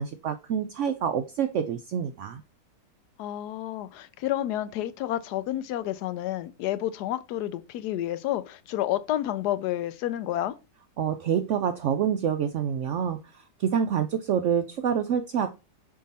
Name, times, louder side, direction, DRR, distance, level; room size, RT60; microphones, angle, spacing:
voice 1, 0.0-2.4 11.0-13.2 13.6-15.5, right 8 dB, 75° right, 0.7 m, -27 dB
voice 2, 3.2-10.5, left 13 dB, 80° left, 1.1 m, -30 dB
5.8 x 4.7 x 4.1 m
omnidirectional pair, 1.7 m